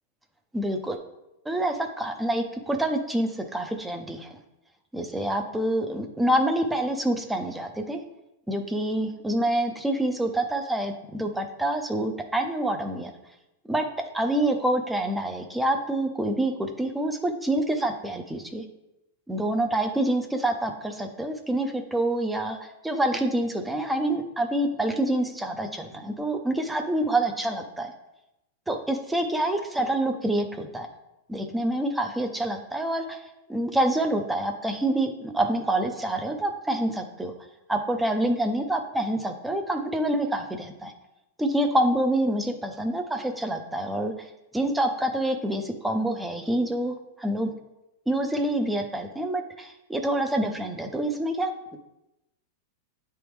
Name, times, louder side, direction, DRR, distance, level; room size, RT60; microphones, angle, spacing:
voice 1, 0.5-1.0 1.5-4.3 4.9-8.0 8.5-13.1 13.7-13.9 14.1-18.6 19.3-27.9 28.7-30.9 31.3-37.3 37.7-40.9 41.4-44.1 44.5-47.5 48.1-51.8, right 1 dB, 5° right, 5 dB, 0.5 m, -27 dB
8.9 x 3.4 x 3.1 m, 0.90 s
supercardioid pair, 155°, 0 cm